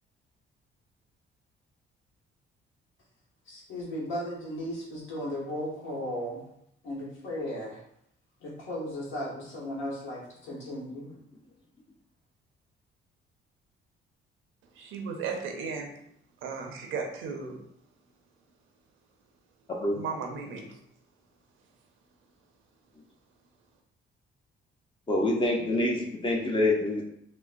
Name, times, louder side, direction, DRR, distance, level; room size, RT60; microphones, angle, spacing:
voice 1, 3.5-6.4 6.8-7.8 8.4-11.1, equal, 75° left, -5 dB, 1.1 m, -36 dB
voice 2, 14.8-15.9 16.4-17.6 20.0-20.8, right 5 dB, 90° right, 3 dB, 0.5 m, -35 dB
voice 3, 25.1-27.1, left 1 dB, 25° left, -1 dB, 0.6 m, -26 dB
3.7 x 2.0 x 2.4 m, 0.72 s
cardioid pair, 90°, 20 cm